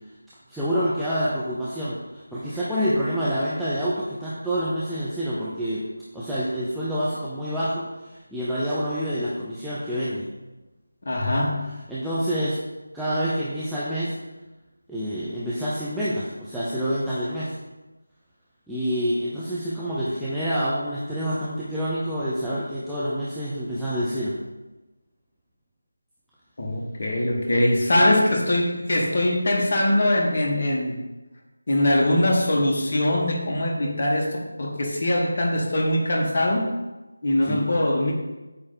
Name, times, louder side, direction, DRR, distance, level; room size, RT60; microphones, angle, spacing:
voice 1, 0.5-5.8 6.1-10.3 11.9-12.6 12.9-14.1 14.9-17.5 18.7-24.4 27.9-28.2 37.4-37.6, equal, ahead, -13 dB, 0.6 m, -27 dB
voice 2, 11.0-11.7 26.6-31.0 31.7-36.7 37.2-38.1, left 1 dB, 45° left, 0 dB, 1.2 m, -22 dB
8.1 x 3.3 x 3.8 m, 1.1 s
figure-of-eight pair, 165°, 0 cm